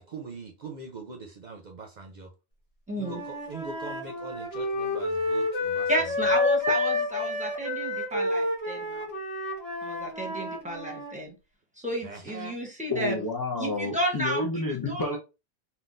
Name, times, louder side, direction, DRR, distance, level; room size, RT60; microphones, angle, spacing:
voice 1, 0.0-2.3 2.9-5.9 12.0-12.6, right 4 dB, 50° right, 0.6 m, -42 dB
voice 2, 2.9-3.2 5.9-9.1 9.8-11.3 11.8-13.2 13.6-14.4 14.9-15.2, right 1 dB, 10° right, 0.9 m, -32 dB
Wind instrument woodwind instrument, 3.0-11.1, left 2 dB, 70° left, 1.6 m, -29 dB
voice 3, 12.9-15.2, left 2 dB, 35° left, 0.4 m, -30 dB
3.8 x 2.2 x 2.5 m
omnidirectional pair, 1.1 m